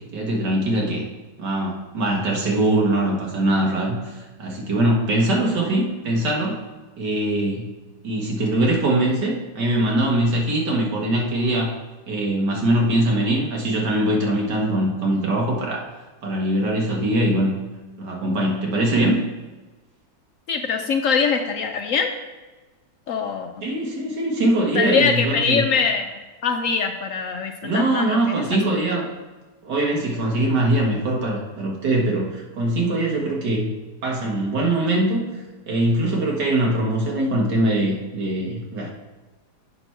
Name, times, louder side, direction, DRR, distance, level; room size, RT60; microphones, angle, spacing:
voice 1, 0.1-1.0 1.4-6.6 7.0-7.7 8.0-11.7 12.1-15.9 16.2-17.5 18.0-19.2 23.6-25.6 27.6-29.1 29.6-33.7 34.0-35.3 35.7-38.9, right 1 dB, 90° right, -2 dB, 2.2 m, -22 dB
voice 2, 20.5-22.1 23.1-23.6 24.7-28.4, left 5 dB, 65° left, 5 dB, 0.9 m, -23 dB
7.9 x 5.9 x 4.5 m, 1.2 s
omnidirectional pair, 1.8 m